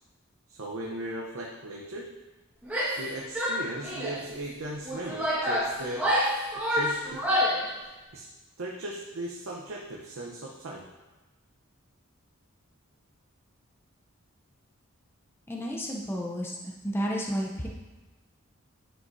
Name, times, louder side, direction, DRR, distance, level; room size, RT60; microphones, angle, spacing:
voice 1, 0.5-2.1 3.0-6.1 6.7-7.2 8.1-8.3 8.6-10.8, right 1 dB, 80° right, -2 dB, 0.8 m, -37 dB
Female speech woman speaking / Yell, 2.6-3.1 3.3-4.2 4.8-7.7, equal, 5° right, 1.5 m, -28 dB
voice 2, 15.5-17.7, equal, 10° left, -1 dB, 0.6 m, -32 dB
9.9 x 6.3 x 2.7 m, 1.2 s
head